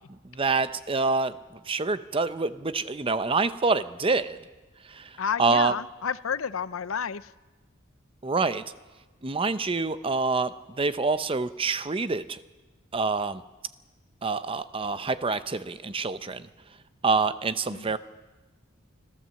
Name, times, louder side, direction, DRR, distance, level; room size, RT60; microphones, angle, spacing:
voice 1, 0.3-1.3 1.7-4.4 4.9-5.1 5.4-5.7 8.2-8.6 9.2-12.4 12.9-13.4 14.2-16.5 17.0-18.0, right 4 dB, 25° right, 13 dB, 0.7 m, -26 dB
voice 2, 5.2-7.3 17.7-17.9, left 7 dB, 75° left, 16 dB, 0.6 m, -31 dB
25.5 x 14.5 x 7.6 m, 1.2 s
head